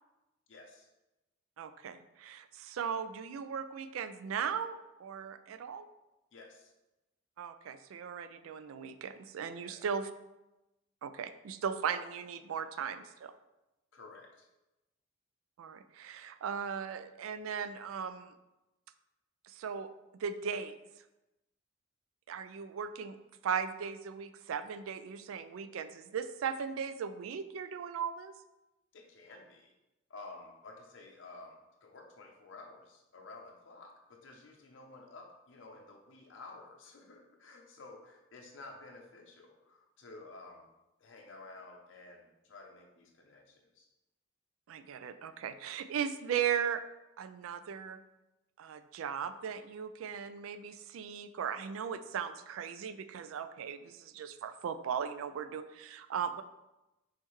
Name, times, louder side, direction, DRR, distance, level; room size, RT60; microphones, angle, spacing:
voice 1, 0.5-0.9 6.3-6.7 9.6-9.8 13.9-14.5 28.9-29.7 30.1-40.7 41.0-43.9, left 3 dB, 65° left, 0 dB, 0.5 m, -52 dB
voice 2, 1.6-5.9 7.4-10.1 11.0-13.3 15.6-18.3 19.4-19.9 20.1-20.7 22.3-23.2 23.4-28.3 44.7-46.8 47.2-48.0 48.6-56.4, right 7 dB, 90° right, 10 dB, 0.3 m, -37 dB
5.4 x 3.2 x 3.1 m, 0.99 s
head